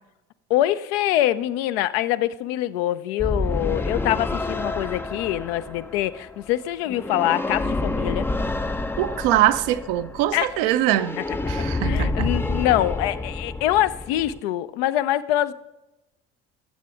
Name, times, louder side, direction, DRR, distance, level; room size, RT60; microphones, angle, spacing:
voice 1, 0.5-8.3 10.3-10.6 11.8-15.5, left 13 dB, 60° left, 0.6 m, -24 dB
sound 1, 3.2-14.4, left 2 dB, 5° left, 0.5 m, -28 dB
voice 2, 9.0-11.2 11.5-12.3, right 13 dB, 55° right, 0.7 m, -22 dB
16.5 x 8.3 x 3.5 m
figure-of-eight pair, 60°, 34 cm